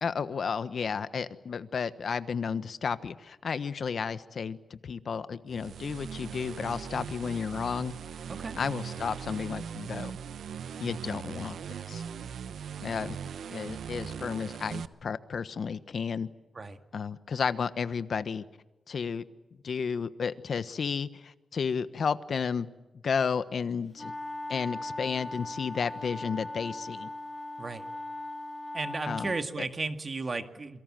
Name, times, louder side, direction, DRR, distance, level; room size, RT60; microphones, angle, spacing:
voice 1, 0.0-7.9 8.5-10.1 10.8-11.6 11.9-12.0 12.8-13.2 13.5-16.3 16.9-18.4 18.9-19.2 19.6-22.7 23.0-24.1 24.5-27.1 29.1-29.7, left 6 dB, 60° left, 13 dB, 1.2 m, -32 dB
sound 1, 5.5-14.9, right 7 dB, 85° right, 0.9 m, -40 dB
voice 2, 8.3-8.6 16.6-16.8 27.6-27.8 28.7-30.8, right 3 dB, 40° right, 7 dB, 2.1 m, -34 dB
sound 2, 24.0-29.5, left 2 dB, 15° left, 1.5 m, -39 dB
27.5 x 23.5 x 7.7 m, 1.1 s
wide cardioid pair, 110°, 0 cm